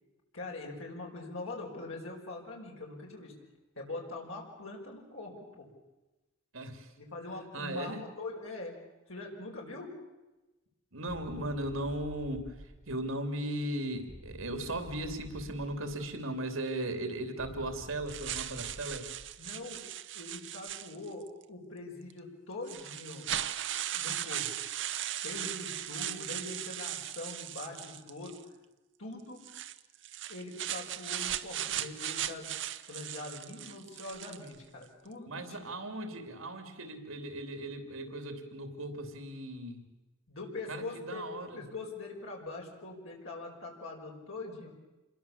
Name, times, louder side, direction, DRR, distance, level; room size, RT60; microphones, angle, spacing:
voice 1, 0.3-3.3 3.8-5.7 7.0-8.8 9.1-9.9 19.4-19.8 20.1-23.3 23.9-24.5 25.2-28.4 29.0-29.4 30.3-32.6 32.9-35.6 40.3-41.3 41.5-44.7, left 2 dB, 85° left, -1 dB, 5.3 m, -43 dB
voice 2, 6.5-6.9 7.5-8.0 10.9-19.1 31.7-31.8 35.3-39.8 40.7-41.6, right 1 dB, 85° right, 8 dB, 3.1 m, -37 dB
sound 1, 11.1-13.4 14.1-16.4 17.4-19.6, equal, 5° left, 3.9 m, -50 dB
sound 2, 18.1-21.3 22.1-22.2 22.7-28.4 29.4-34.6, right 11 dB, 60° right, 0.9 m, -38 dB
27.5 x 22.0 x 7.2 m, 1.1 s
head